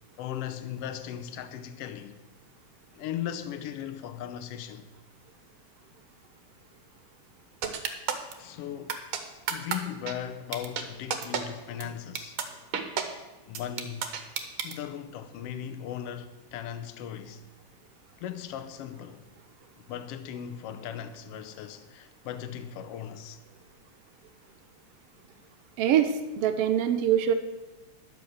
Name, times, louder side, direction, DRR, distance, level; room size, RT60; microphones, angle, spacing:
voice 1, 0.2-2.2 2.9-4.9 8.4-9.0 9.5-12.4 13.5-14.1 14.6-17.4 18.2-19.2 19.8-23.4, left 9 dB, 80° left, 1.4 m, -38 dB
sound 1, 7.6-8.3 8.9-9.2 9.5-9.8 10.1-10.2 10.5-10.8 11.1-11.4 11.8-11.9 12.1-12.4 12.7-13.0 13.5-14.7, right 8 dB, 65° right, 1.3 m, -29 dB
voice 2, 25.8-27.3, right 9 dB, 85° right, 1.4 m, -24 dB
11.0 x 7.2 x 6.3 m
omnidirectional pair, 3.5 m